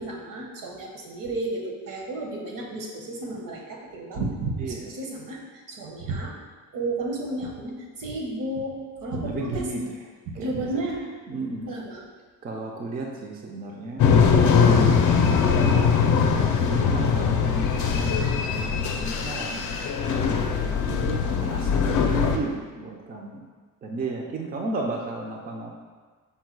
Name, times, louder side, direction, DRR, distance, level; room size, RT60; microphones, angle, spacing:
voice 1, 0.0-5.4 5.7-6.3 6.7-9.7 10.4-11.1 11.7-12.0, right 2 dB, 70° right, 0 dB, 0.9 m, -32 dB
voice 2, 9.2-9.8 10.4-10.8 11.3-11.7 12.4-14.1 15.1-15.9 16.6-19.7 20.1-23.4 23.8-25.7, right 3 dB, 30° right, 0 dB, 0.4 m, -34 dB
sound 1, 14.0-22.4, left 6 dB, 65° left, 0.5 m, -21 dB
5.4 x 2.2 x 4.5 m, 1.4 s
cardioid pair, 175°, 33 cm